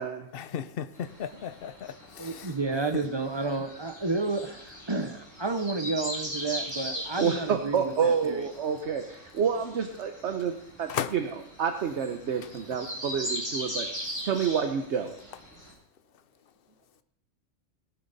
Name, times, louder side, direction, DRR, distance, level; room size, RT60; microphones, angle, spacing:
voice 1, 0.3-2.5 10.9-11.1, left 8 dB, 55° left, 0.8 m, -35 dB
sound 1, 0.9-15.7, equal, 15° left, 7.0 m, -40 dB
voice 2, 2.2-8.5, right 3 dB, 25° right, 0.7 m, -31 dB
voice 3, 7.2-11.3 11.6-13.9 14.2-15.1, right 7 dB, 60° right, 1.1 m, -28 dB
18.5 x 10.5 x 4.1 m
omnidirectional pair, 1.4 m